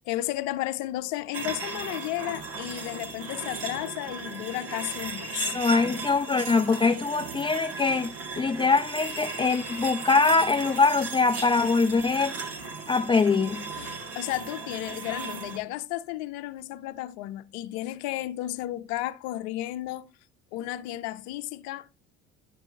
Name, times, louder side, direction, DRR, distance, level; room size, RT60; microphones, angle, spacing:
voice 1, 0.0-5.5 13.8-20.1 20.5-21.9, left 15 dB, 65° left, 0.7 m, -33 dB
sound 1, 1.3-15.6, right 4 dB, 50° right, 2.1 m, -37 dB
voice 2, 5.5-12.4 12.9-13.7, left 4 dB, 15° left, 0.6 m, -23 dB
11.0 x 6.1 x 2.7 m
hypercardioid pair, 60°, 31 cm